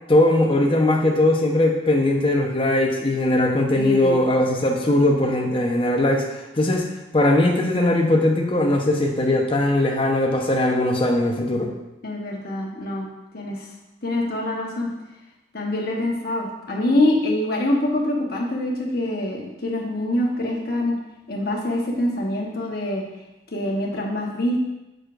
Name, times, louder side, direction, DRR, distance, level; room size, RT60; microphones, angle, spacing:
voice 1, 0.1-6.9 7.1-11.7, left 1 dB, 30° left, 1 dB, 0.8 m, -20 dB
voice 2, 3.7-4.2 12.0-13.1 13.3-13.7 14.0-14.9 15.5-21.0 21.3-23.0 23.5-24.6, left 1 dB, 60° left, -1 dB, 1.2 m, -25 dB
6.8 x 6.4 x 2.5 m, 0.95 s
head